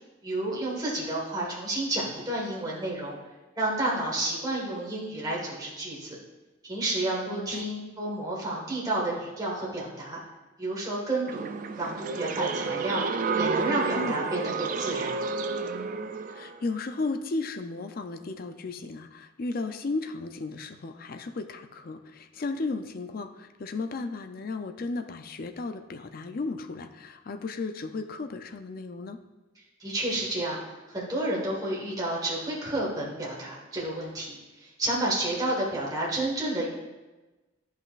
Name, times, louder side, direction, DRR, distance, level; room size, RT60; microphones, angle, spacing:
voice 1, 0.2-3.2 3.6-6.2 6.6-10.2 10.6-15.1 29.8-30.6 30.9-36.7, right 1 dB, 20° right, -5 dB, 1.5 m, -30 dB
voice 2, 7.3-7.7 14.0-14.2 16.3-29.2, left 3 dB, 45° left, 8 dB, 0.5 m, -34 dB
sound 1, 11.3-16.6, right 4 dB, 40° right, 0.3 m, -30 dB
11.0 x 5.5 x 2.5 m, 1.1 s
head